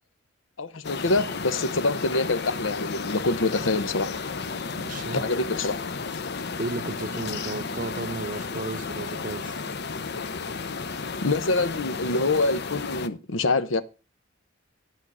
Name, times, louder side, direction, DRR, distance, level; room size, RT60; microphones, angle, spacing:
voice 1, 0.6-4.1 5.1-5.8 10.1-10.2 11.2-13.8, left 2 dB, 85° left, 1.0 m, -25 dB
sound 1, 0.8-13.1, left 4 dB, 55° left, 0.8 m, -33 dB
voice 2, 4.7-5.2 6.6-9.6, right 3 dB, 45° right, 0.7 m, -34 dB
12.5 x 5.7 x 6.3 m
head